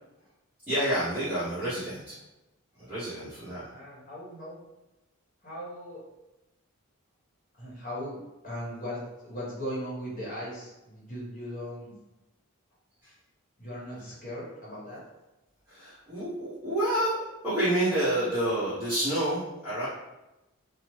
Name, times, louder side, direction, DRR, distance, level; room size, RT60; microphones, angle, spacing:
voice 1, 0.7-2.2 2.8-3.7 13.0-13.1 15.7-19.9, right 1 dB, 5° right, -15 dB, 0.9 m, -29 dB
voice 2, 3.7-4.6 5.4-6.0 7.6-8.2 8.4-11.9 13.6-15.0, equal, 40° left, -6 dB, 1.0 m, -38 dB
3.0 x 2.0 x 3.0 m, 0.99 s
head